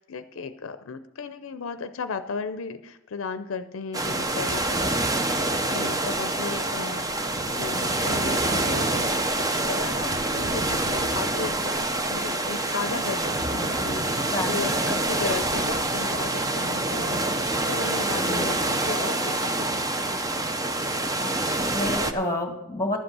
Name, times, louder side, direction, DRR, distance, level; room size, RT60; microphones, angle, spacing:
voice 1, 0.0-4.9 5.7-20.2, left 5 dB, 75° left, 10 dB, 0.5 m, -35 dB
sound 1, 3.9-22.1, right 2 dB, 15° right, 0.6 m, -26 dB
voice 2, 14.3-14.8 15.1-15.2 18.2-18.6 21.2-23.0, left 2 dB, 15° left, 4 dB, 1.8 m, -30 dB
11.5 x 7.8 x 6.1 m, 0.95 s
head